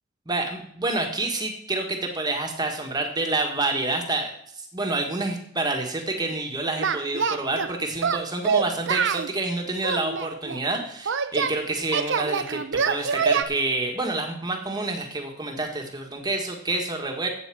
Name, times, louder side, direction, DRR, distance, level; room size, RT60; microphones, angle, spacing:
voice 1, 0.2-4.3 4.6-17.3, right 2 dB, 20° right, 2 dB, 1.6 m, -28 dB
Singing, 6.8-7.7 8.0-9.3 9.8-11.5 11.9-13.4, right 6 dB, 55° right, 0.7 m, -25 dB
8.3 x 8.1 x 7.6 m, 0.69 s
head